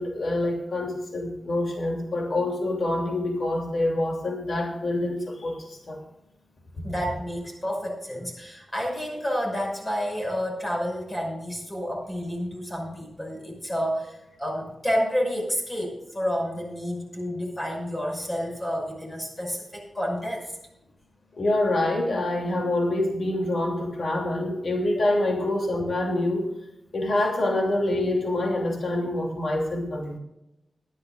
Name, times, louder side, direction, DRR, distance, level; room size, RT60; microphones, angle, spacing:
voice 1, 0.0-6.0 21.4-26.5 26.9-30.2, left 1 dB, 65° left, 0 dB, 2.9 m, -26 dB
voice 2, 6.8-20.5 25.0-25.1, equal, 20° left, -1 dB, 6.0 m, -30 dB
20.5 x 12.0 x 2.5 m, 0.89 s
wide cardioid pair, 140°, 0 cm